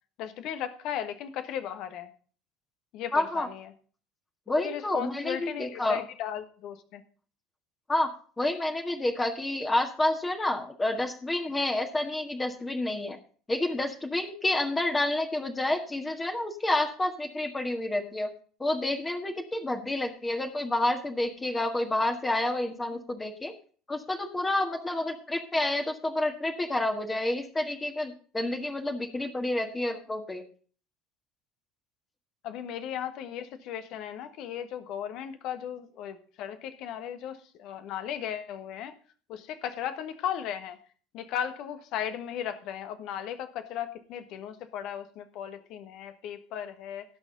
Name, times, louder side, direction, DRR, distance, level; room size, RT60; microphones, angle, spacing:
voice 1, 0.2-2.1 2.9-3.7 4.5-7.0 32.4-38.9 39.3-40.8 41.1-47.0, left 9 dB, 50° left, 10 dB, 1.4 m, -36 dB
voice 2, 3.1-3.5 4.5-6.0 7.9-8.1 8.4-13.2 13.5-18.3 18.6-23.5 23.9-30.4, left 1 dB, 15° left, 4 dB, 1.6 m, -29 dB
17.5 x 6.4 x 3.9 m, 0.42 s
figure-of-eight pair, 65°, 0 cm